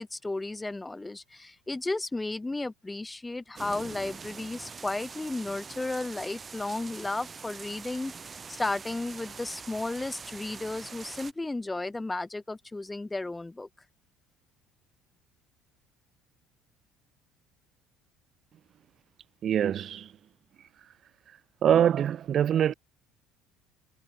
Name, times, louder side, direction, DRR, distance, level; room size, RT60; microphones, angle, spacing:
voice 1, 0.0-13.7, left 2 dB, 15° left, 0.5 m, -34 dB
sound 1, 3.6-11.3, right 5 dB, 30° right, 0.7 m, -44 dB
voice 2, 19.4-20.1 21.6-22.7, right 9 dB, 50° right, 0.3 m, -24 dB
supercardioid pair, 100°, 0 cm